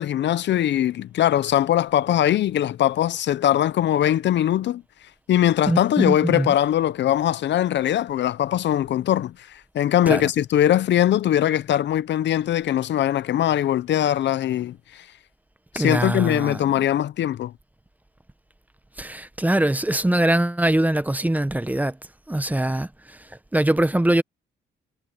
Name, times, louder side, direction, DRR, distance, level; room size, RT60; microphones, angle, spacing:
voice 1, 0.0-4.8 5.3-15.0 15.7-17.5, left 11 dB, 65° left, 0.7 m, -21 dB
voice 2, 6.0-6.5 10.1-10.3 15.7-16.6 19.0-22.0 22.3-22.9 23.5-24.2, right 1 dB, 10° right, 0.9 m, -22 dB
cardioid pair, 90°, 20 cm